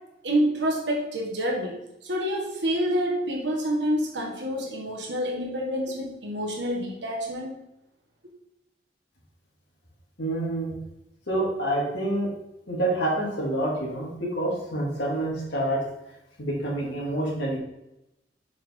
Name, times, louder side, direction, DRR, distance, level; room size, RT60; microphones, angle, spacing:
voice 1, 0.2-7.5, equal, 70° right, -2 dB, 1.5 m, -27 dB
voice 2, 10.2-10.7 11.3-12.3 12.7-15.8 16.4-17.6, right 1 dB, 70° left, -5 dB, 2.1 m, -27 dB
7.2 x 4.6 x 3.6 m, 0.87 s
head